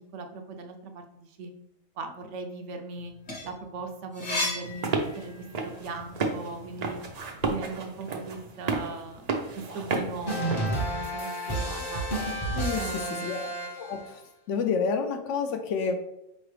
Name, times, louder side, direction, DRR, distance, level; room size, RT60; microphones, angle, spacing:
voice 1, 0.0-1.5 2.0-3.1 3.4-7.0 7.5-9.3 9.7-12.1 12.7-13.5, right 3 dB, 70° right, 5 dB, 0.9 m, -39 dB
sound 1, 3.0-5.7 6.1-7.5, left 2 dB, 40° left, 1.1 m, -35 dB
sound 2, 4.6-10.6, right 3 dB, 50° right, 0.5 m, -32 dB
sound 3, 10.3-14.1, right 1 dB, 25° left, 0.7 m, -31 dB
voice 2, 13.8-14.2 14.5-16.0, left 5 dB, 70° left, 5 dB, 0.9 m, -28 dB
4.9 x 3.1 x 3.2 m, 0.84 s
omnidirectional pair, 1.3 m